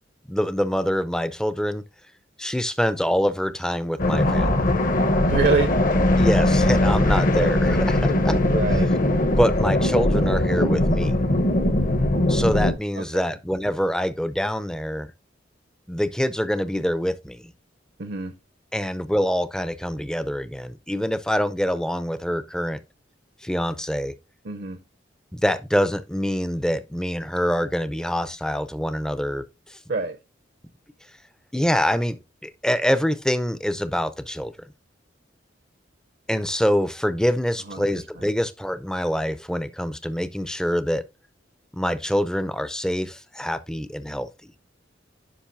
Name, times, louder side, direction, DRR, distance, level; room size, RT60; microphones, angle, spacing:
voice 1, 0.3-1.8 2.4-4.6 6.2-8.4 9.4-11.2 12.3-15.1 15.9-17.5 18.7-22.8 23.4-24.1 25.3-29.8 31.5-34.5 36.3-41.0 41.7-44.5, equal, 5° left, 0.5 m, -25 dB
sound 1, 4.0-12.7, left 1 dB, 45° left, 0.9 m, -20 dB
voice 2, 5.2-5.8 8.5-8.9 13.0-13.4 18.0-18.4 24.4-24.8 29.9-30.2 37.7-37.9 38.2-38.3, right 4 dB, 60° right, 0.7 m, -26 dB
10.0 x 5.4 x 2.6 m
head